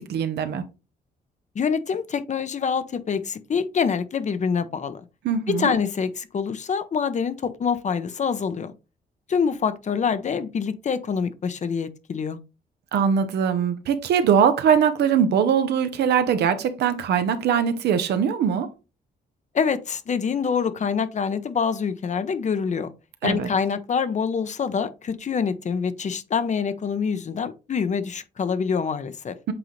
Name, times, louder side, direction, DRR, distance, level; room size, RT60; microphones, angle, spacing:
voice 1, 0.1-0.6 5.2-5.8 12.9-18.7 23.2-23.5, right 7 dB, 80° right, 1.0 m, -21 dB
voice 2, 1.5-5.0 5.6-8.7 9.3-12.4 19.5-22.9 23.2-29.3, left 6 dB, 45° left, 0.8 m, -25 dB
7.8 x 3.9 x 3.2 m
cardioid pair, 90°, 17 cm